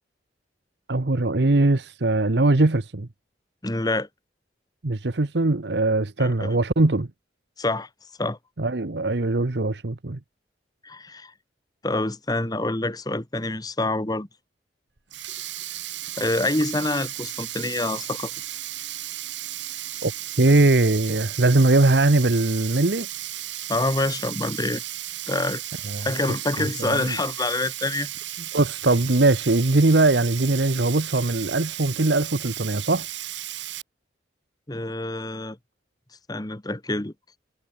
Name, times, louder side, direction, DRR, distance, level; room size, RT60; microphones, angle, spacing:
voice 1, 0.9-3.1 4.8-7.1 8.6-10.2 20.0-20.1 20.4-23.1 25.9-26.1 26.6-27.2 28.5-33.1, right 2 dB, 65° right, 1.0 m, -21 dB
voice 2, 3.6-4.1 6.2-6.5 7.6-7.9 8.2-8.4 10.8-11.3 11.8-14.3 16.2-18.3 23.7-24.8 25.3-25.6 26.0-28.1 34.7-35.6 36.3-37.1, left 2 dB, 20° left, 1.3 m, -26 dB
Sink (filling or washing), 15.0-33.8, right 14 dB, 80° right, 3.2 m, -34 dB
head